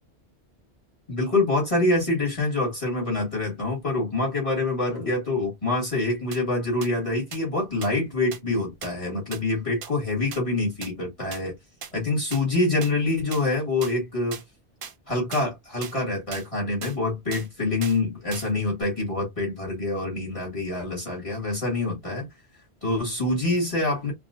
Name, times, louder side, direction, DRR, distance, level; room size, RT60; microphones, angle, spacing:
voice 1, 1.1-11.5 11.9-14.4 15.1-22.3 22.8-24.1, left 2 dB, 30° left, 2.0 m, -26 dB
sound 1, 6.3-6.4 6.8-6.9 7.3-7.4 7.8-7.9 8.3-8.4 8.8-8.9 9.3-9.4 9.8-9.9 10.3-10.4 10.8-10.9 11.3-11.4 11.8-11.9 12.3-12.4 12.8-12.9 13.3-13.4 13.8-13.9 14.3-14.4 14.8-14.9 15.3-15.4 15.8-16.0 16.3-16.5 16.8-17.0 17.3-17.5 17.8-18.0 18.3-18.5 18.8-18.9, right 7 dB, 55° right, 0.8 m, -38 dB
4.6 x 2.1 x 2.5 m
omnidirectional pair, 1.1 m